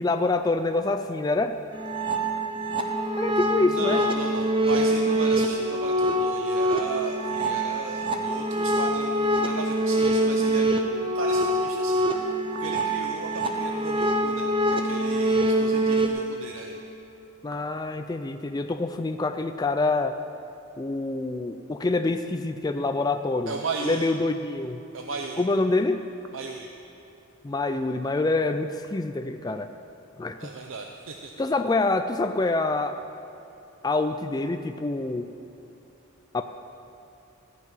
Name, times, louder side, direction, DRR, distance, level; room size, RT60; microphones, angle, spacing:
voice 1, 0.0-1.6 3.2-4.1 17.4-20.2 20.8-23.5 23.8-24.8 25.4-26.1 27.4-29.7 30.2-30.5 31.4-33.0 33.8-35.3 36.3-36.4, left 3 dB, 20° left, 7 dB, 0.3 m, -26 dB
sound 1, 1.7-16.1, right 1 dB, 25° right, 0.8 m, -25 dB
voice 2, 3.6-12.3 12.6-16.8 23.5-24.1 24.9-25.4 26.3-26.7 30.4-31.3, right 4 dB, 60° right, 2 dB, 0.7 m, -36 dB
14.0 x 5.8 x 9.0 m, 2.9 s
head